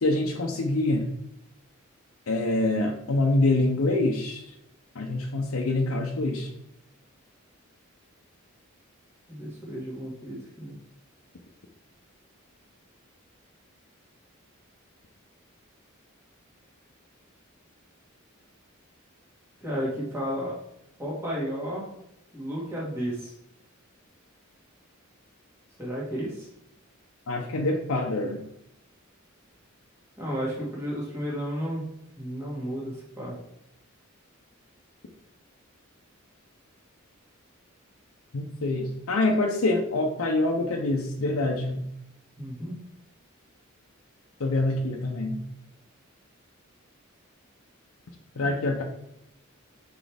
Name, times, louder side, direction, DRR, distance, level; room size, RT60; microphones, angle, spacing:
voice 1, 0.0-1.1 2.3-4.4 5.0-6.5 27.3-28.4 38.3-41.8 44.4-45.4 48.4-48.8, left 2 dB, 85° left, 0 dB, 0.7 m, -25 dB
voice 2, 9.3-10.8 19.6-20.5 21.0-21.9 22.3-23.3 25.8-26.5 30.2-31.8 32.2-33.3 42.4-42.7, equal, 10° right, -6 dB, 1.6 m, -32 dB
6.2 x 4.5 x 3.4 m, 0.82 s
head